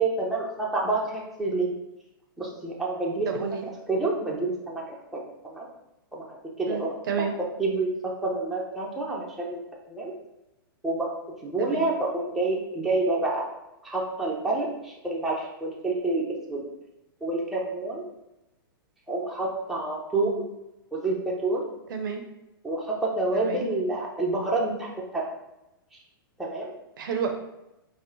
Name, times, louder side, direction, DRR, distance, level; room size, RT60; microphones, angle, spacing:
voice 1, 0.0-1.7 2.4-3.6 3.9-4.8 5.1-5.2 5.5-5.7 6.1-6.2 6.6-6.9 7.6-9.6 9.9-10.1 10.8-11.1 11.4-13.5 13.8-16.2 16.5-16.6 17.2-18.0 19.1-20.4 20.9-21.6 22.6-25.2 26.4-26.7, right 2 dB, ahead, -4 dB, 0.7 m, -28 dB
voice 2, 3.3-3.7 6.7-7.3 11.6-11.8 21.9-22.2 23.3-23.6 27.0-27.3, right 6 dB, 60° right, 4 dB, 0.6 m, -30 dB
3.7 x 2.1 x 3.8 m, 0.92 s
hypercardioid pair, 130°, 12 cm